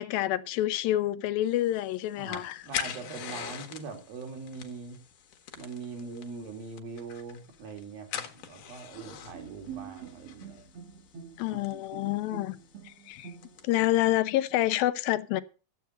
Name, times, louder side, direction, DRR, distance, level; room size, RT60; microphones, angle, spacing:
voice 1, 0.0-2.6 11.4-12.6 12.9-13.3 13.6-15.4, left 14 dB, 80° left, 2.5 m, -28 dB
sound 1, 1.5-14.0, left 9 dB, 65° left, 2.7 m, -43 dB
voice 2, 2.2-5.0 5.6-10.6 11.5-11.6, right 4 dB, 75° right, 4.5 m, -42 dB
Bowed string instrument, 8.9-13.8, right 8 dB, 55° right, 1.9 m, -46 dB
12.5 x 8.1 x 6.6 m
omnidirectional pair, 4.2 m